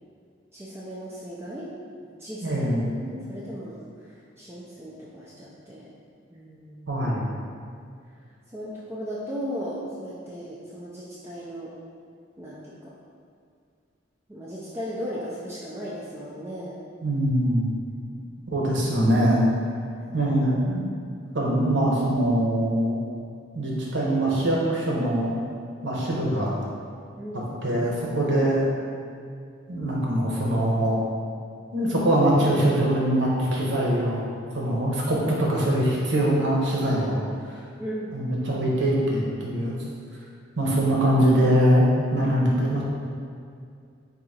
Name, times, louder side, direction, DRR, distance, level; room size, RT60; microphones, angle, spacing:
voice 1, 0.5-1.7 2.0-5.9 6.3-7.1 8.5-11.7 12.4-12.9 14.3-16.8 18.1-18.3 20.0-20.1 27.2-27.5 37.8-38.2, equal, 10° right, -8 dB, 0.4 m, -37 dB
voice 2, 2.4-2.8 6.9-7.3 17.0-17.7 18.5-19.5 20.1-20.8 21.3-23.0 23.5-25.3 25.8-26.6 27.6-28.6 29.7-31.0 31.7-34.3 34.5-37.2 37.4-37.5 38.1-39.7 40.6-42.8, right 1 dB, 65° right, -4 dB, 0.8 m, -23 dB
3.7 x 2.7 x 4.2 m, 2.3 s
head